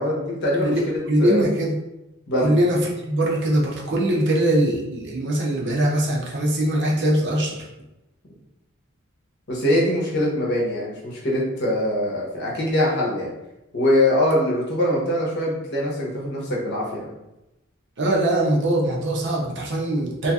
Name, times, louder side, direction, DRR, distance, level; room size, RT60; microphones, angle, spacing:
voice 1, 0.0-0.8 1.2-1.5 2.3-2.6 9.5-13.3 13.7-17.1, left 1 dB, 55° left, -3 dB, 0.8 m, -23 dB
voice 2, 0.6-1.8 2.4-7.6 18.0-20.3, right 1 dB, 55° right, -2 dB, 0.6 m, -22 dB
2.9 x 2.7 x 2.3 m, 0.93 s
head